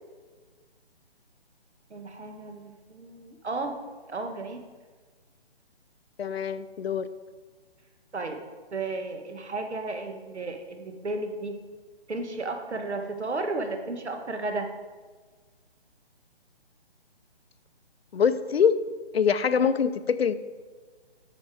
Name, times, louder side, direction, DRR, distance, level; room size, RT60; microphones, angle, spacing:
voice 1, 1.9-3.8 4.1-4.7 8.1-8.4 8.7-11.6 12.1-14.7, right 3 dB, 85° right, 5 dB, 1.6 m, -33 dB
voice 2, 6.2-7.1 18.1-18.8 19.1-20.3, left 7 dB, 65° left, 13 dB, 0.7 m, -24 dB
8.4 x 6.7 x 5.0 m, 1.4 s
hypercardioid pair, 165°, 33 cm